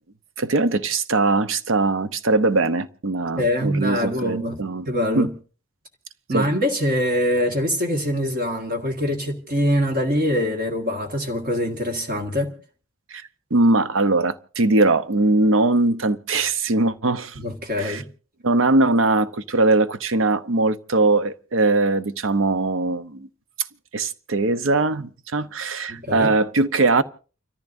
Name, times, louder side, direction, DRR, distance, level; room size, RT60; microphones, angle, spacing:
voice 1, 0.4-4.9 5.2-5.3 6.3-6.5 13.1-17.4 17.8-18.0 18.4-23.3 23.9-27.0, right 2 dB, 70° right, 0.8 m, -21 dB
voice 2, 3.4-4.6 4.8-5.3 6.3-12.5 17.3-18.1 25.9-26.3, equal, 45° right, 1.6 m, -24 dB
29.5 x 14.0 x 2.6 m
head